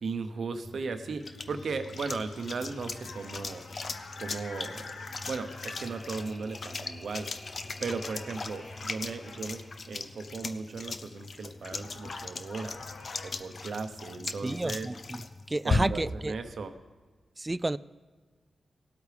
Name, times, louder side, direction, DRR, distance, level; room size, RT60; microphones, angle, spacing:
voice 1, 0.0-3.6 4.2-7.3 7.8-12.8 13.2-14.9 15.6-16.7, right 4 dB, 75° right, 8 dB, 0.8 m, -36 dB
sound 1, 0.6-16.2, left 4 dB, 60° left, 0.6 m, -38 dB
sound 2, 0.9-6.5 7.4-7.6 7.9-9.8 11.2-11.3 11.6-13.3, left 3 dB, 90° left, 1.2 m, -48 dB
sound 3, 4.6-11.7, equal, 10° left, 2.7 m, -53 dB
voice 2, 14.4-16.4 17.4-17.8, right 2 dB, 25° right, 17 dB, 0.3 m, -31 dB
18.5 x 8.3 x 3.4 m, 1.4 s
cardioid pair, 60°, 0 cm